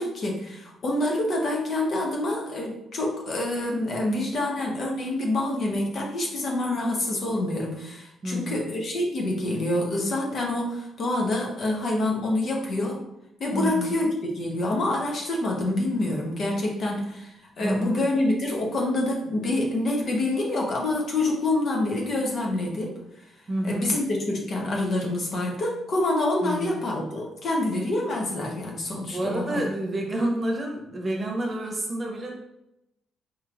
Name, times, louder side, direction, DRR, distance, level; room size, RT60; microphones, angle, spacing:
voice 1, 0.0-13.0 13.4-23.0 23.6-29.6, left 1 dB, 50° left, -1 dB, 0.9 m, -27 dB
voice 2, 8.2-8.7 13.5-13.9 17.6-18.1 23.5-23.9 26.4-26.8 29.0-32.4, right 1 dB, 30° right, 0 dB, 0.9 m, -29 dB
4.6 x 3.0 x 2.5 m, 0.86 s
cardioid pair, 90°, 0 cm